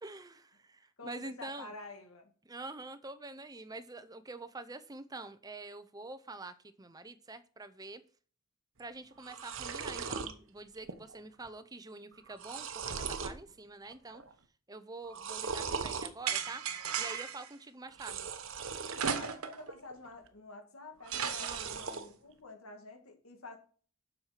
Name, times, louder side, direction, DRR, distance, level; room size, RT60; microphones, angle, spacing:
voice 1, 0.0-1.7 2.5-8.0 8.8-14.2 14.7-16.6 17.0-18.3 21.4-21.8, right 2 dB, 15° right, 11 dB, 0.7 m, -46 dB
voice 2, 1.0-2.3 19.2-23.6, left 3 dB, 75° left, 4 dB, 2.0 m, -49 dB
sound 1, 8.8-8.9 9.1-10.3 10.8-11.2 11.4-11.5 12.1-13.4 13.8-14.3 15.0-16.1 17.9-19.3 19.7-20.3 21.0-22.1, right 5 dB, 60° right, 1.0 m, -39 dB
sound 2, 16.3-17.5 19.0-19.7 20.1-20.2 21.1-22.0, right 7 dB, 90° right, 1.1 m, -35 dB
7.7 x 6.5 x 5.8 m, 0.41 s
head